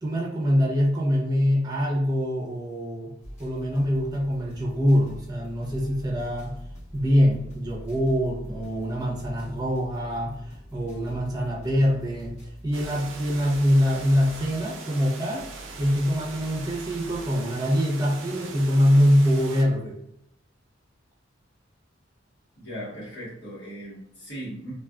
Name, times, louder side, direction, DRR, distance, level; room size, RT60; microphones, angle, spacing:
voice 1, 0.0-3.1 3.4-6.5 6.9-12.3 12.6-15.5 15.8-20.0, equal, 20° right, -3 dB, 0.7 m, -24 dB
sound 1, 3.2-17.4, equal, 35° left, 1.0 m, -44 dB
sound 2, 12.7-19.6, right 4 dB, 80° right, 0.5 m, -41 dB
voice 2, 22.6-24.7, equal, 65° left, -7 dB, 1.3 m, -38 dB
2.4 x 2.4 x 2.3 m, 0.75 s
head